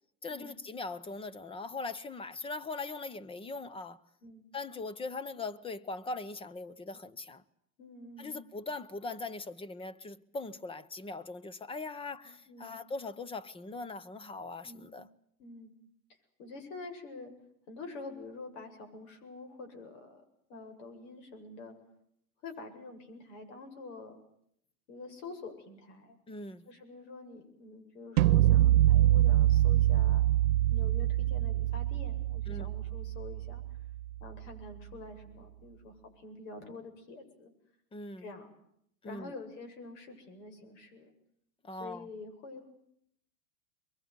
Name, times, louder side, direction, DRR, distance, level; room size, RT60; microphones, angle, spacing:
voice 1, 0.2-4.0 4.5-7.4 8.2-15.1 26.3-26.7 32.5-32.7 37.9-38.3 39.0-39.3 41.6-42.1, left 3 dB, 10° left, 1.0 m, -40 dB
voice 2, 7.8-8.4 12.5-12.7 14.6-14.9 15.4-15.7 16.4-17.3 17.7-20.2 20.5-21.7 22.4-24.2 24.9-26.2 26.7-30.3 30.7-33.6 34.2-37.5 38.2-38.5 39.0-41.1 41.7-42.7, left 3 dB, 60° left, 8.0 m, -47 dB
sound 1, 28.2-34.2, right 13 dB, 75° right, 1.1 m, -25 dB
23.5 x 23.0 x 9.7 m
supercardioid pair, 130°, 43 cm